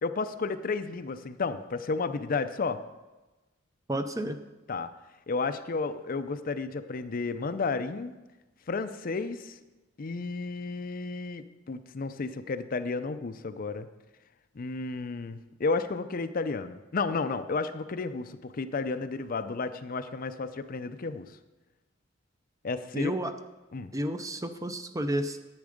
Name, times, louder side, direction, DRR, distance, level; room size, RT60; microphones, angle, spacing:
voice 1, 0.0-2.8 4.7-4.9 5.3-8.1 8.7-9.6 10.0-13.9 14.6-21.3 22.6-23.1 23.7-23.9, left 4 dB, 45° left, 10 dB, 0.5 m, -32 dB
voice 2, 3.9-4.4 22.9-23.3 23.9-25.4, right 1 dB, 15° right, 8 dB, 0.6 m, -31 dB
10.5 x 8.6 x 5.1 m, 1.1 s
head